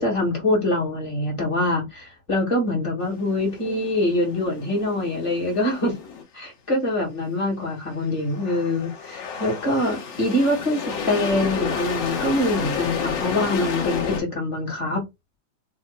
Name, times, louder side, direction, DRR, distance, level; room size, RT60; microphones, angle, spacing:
voice 1, 0.0-5.9 6.3-15.0, left 1 dB, 20° left, 0.9 m, -24 dB
sound 1, 3.0-6.2 8.2-14.2, left 6 dB, 60° left, 1.9 m, -31 dB
5.8 x 2.2 x 2.2 m
omnidirectional pair, 3.6 m